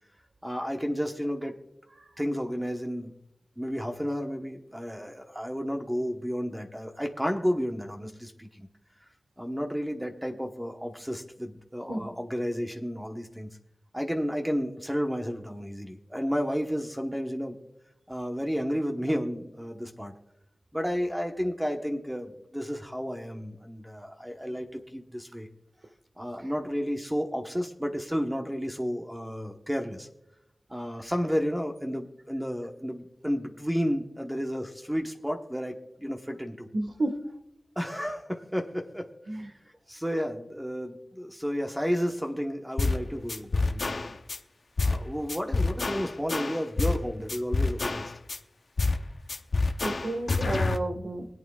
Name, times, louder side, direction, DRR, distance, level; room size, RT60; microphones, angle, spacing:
voice 1, 0.4-1.6 2.2-3.1 3.6-8.7 9.4-13.5 13.9-17.6 18.1-20.1 20.7-25.5 26.2-30.1 30.7-36.7 37.8-39.1 39.9-44.2 44.8-48.1, equal, 10° right, 3 dB, 1.1 m, -32 dB
voice 2, 36.7-37.2 39.3-39.5 49.8-51.3, right 2 dB, 85° right, 6 dB, 1.5 m, -31 dB
sound 1, 42.8-43.0 43.3-44.4 44.8-45.0 45.3-47.0 47.3-48.4 48.8-49.0 49.3-50.8, left 3 dB, 80° left, 0.7 m, -27 dB
24.0 x 8.7 x 2.4 m, 0.83 s
wide cardioid pair, 70°, 0 cm